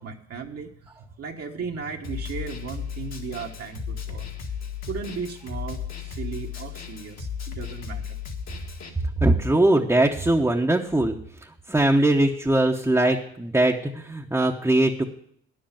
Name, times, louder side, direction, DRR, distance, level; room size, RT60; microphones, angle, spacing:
voice 1, 0.0-4.3 4.9-8.2, right 6 dB, 55° right, 1 dB, 1.3 m, -36 dB
Snare drum, 2.0-8.9, left 7 dB, 60° left, 1.9 m, -35 dB
voice 2, 9.2-11.2 11.4-15.0, right 1 dB, 10° right, 0 dB, 0.9 m, -21 dB
10.0 x 7.8 x 7.2 m, 0.65 s
cardioid pair, 90°, 30 cm